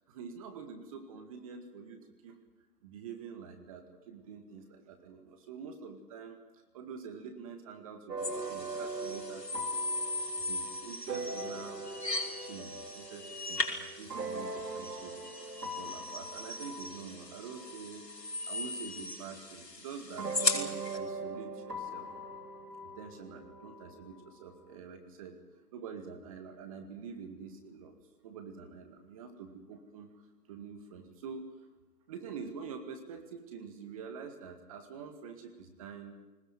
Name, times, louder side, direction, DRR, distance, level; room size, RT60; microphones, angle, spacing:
voice 1, 0.0-2.4 2.8-9.8 10.5-11.9 12.4-15.2 15.5-18.1 18.5-22.1 22.8-25.4 25.7-27.9 28.2-31.5 32.1-36.2, right 6 dB, 20° right, 6 dB, 2.0 m, -46 dB
sound 1, 8.1-18.9 20.2-24.6, right 2 dB, 75° right, 3.9 m, -41 dB
sound 2, 8.2-21.0, left 3 dB, 90° left, 5.5 m, -38 dB
21.5 x 20.0 x 9.3 m, 1.1 s
figure-of-eight pair, 150°, 48 cm